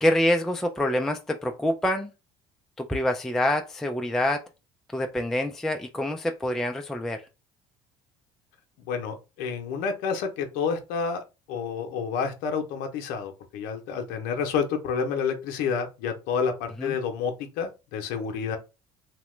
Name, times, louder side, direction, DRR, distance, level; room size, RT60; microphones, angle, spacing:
voice 1, 0.0-2.1 2.8-4.4 4.9-7.2 16.8-16.9, left 1 dB, 5° left, 0.3 m, -26 dB
voice 2, 8.9-11.2 11.5-18.6, left 6 dB, 75° left, 0.6 m, -29 dB
2.9 x 2.1 x 3.1 m
supercardioid pair, 95°, 14 cm